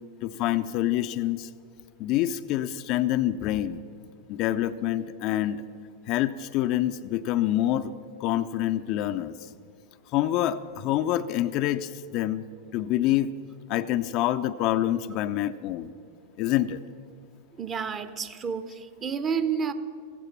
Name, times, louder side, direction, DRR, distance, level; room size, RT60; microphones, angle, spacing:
voice 1, 0.2-1.5 2.0-3.8 4.3-5.6 6.1-9.3 10.1-12.5 12.7-13.3 13.7-15.9 16.4-16.8, left 13 dB, 40° left, 10 dB, 0.5 m, -26 dB
voice 2, 17.6-19.7, right 6 dB, 25° right, 11 dB, 0.8 m, -30 dB
15.0 x 14.5 x 5.7 m, 2.3 s
figure-of-eight pair, 90°, 0 cm